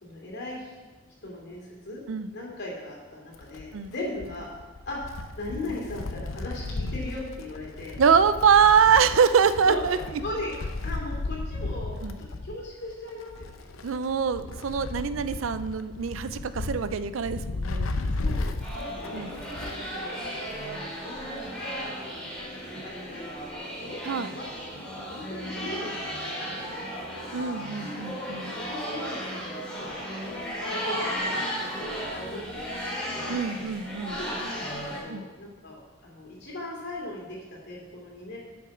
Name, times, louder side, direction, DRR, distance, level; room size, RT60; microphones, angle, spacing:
voice 1, 0.0-0.7 1.2-2.0 2.3-4.5 4.8-5.0 5.4-8.0 9.6-9.8 10.1-10.6 10.8-12.0 12.4-13.7 18.1-19.2 19.7-20.3 21.0-22.5 22.8-24.0 24.3-24.4 25.0-26.8 27.3-27.6 28.5-30.0 30.6-32.6 33.1-33.4 34.2-38.4, left 2 dB, 55° left, -2 dB, 2.7 m, -38 dB
Wind, 3.3-19.9 20.2-20.3 21.3-21.4, left 2 dB, 85° left, 0.7 m, -35 dB
voice 2, 8.0-10.0 12.0-12.2 13.8-17.9 19.1-19.4 24.0-24.3 27.3-28.6 33.3-34.2 35.1-35.3, right 6 dB, 70° right, 13 dB, 0.4 m, -24 dB
sound 1, 18.6-35.0, equal, 5° left, 2.8 m, -35 dB
8.7 x 6.1 x 6.0 m, 1.2 s
head